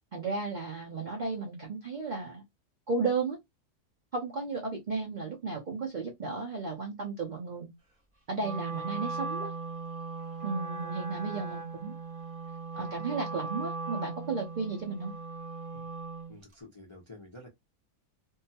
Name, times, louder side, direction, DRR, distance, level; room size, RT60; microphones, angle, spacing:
voice 1, 0.1-2.4 2.9-3.4 4.1-7.7 8.3-9.5 10.4-11.9 12.8-15.1, right 4 dB, 60° right, 0.4 m, -34 dB
Wind instrument woodwind instrument, 8.4-16.4, right 4 dB, 25° right, 0.8 m, -38 dB
voice 2, 16.3-17.5, left 1 dB, 30° left, 0.5 m, -49 dB
2.7 x 2.2 x 2.7 m
omnidirectional pair, 1.7 m